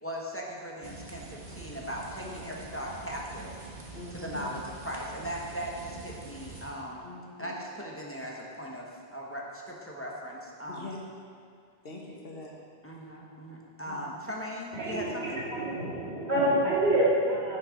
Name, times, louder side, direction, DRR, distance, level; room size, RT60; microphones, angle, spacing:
voice 1, 0.0-3.5 4.1-7.0 7.4-10.9 12.8-15.4, equal, 15° left, -3 dB, 1.0 m, -38 dB
sound 1, 0.8-6.7, right 3 dB, 50° right, 1.2 m, -45 dB
voice 2, 3.9-4.5 7.0-7.5 10.7-11.0 11.8-12.5 13.8-14.1, left 3 dB, 70° left, -1 dB, 1.5 m, -43 dB
voice 3, 14.7-17.6, right 1 dB, 80° right, -6 dB, 2.3 m, -27 dB
8.8 x 6.3 x 5.1 m, 2.2 s
omnidirectional pair, 1.0 m